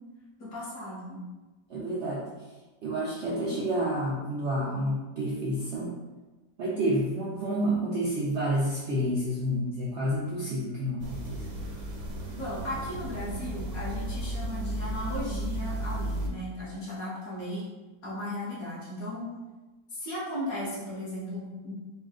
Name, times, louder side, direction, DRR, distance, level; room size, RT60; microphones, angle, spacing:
voice 1, 0.4-1.2 12.3-17.7 18.0-19.3 19.9-21.7, left 1 dB, 55° left, -7 dB, 1.6 m, -36 dB
voice 2, 1.7-2.2 2.8-5.9 6.6-11.4, right 1 dB, 70° right, -6 dB, 0.6 m, -29 dB
sound 1, 11.0-16.3, right 1 dB, 90° right, 1.5 m, -34 dB
4.2 x 2.3 x 3.6 m, 1.2 s
omnidirectional pair, 1.9 m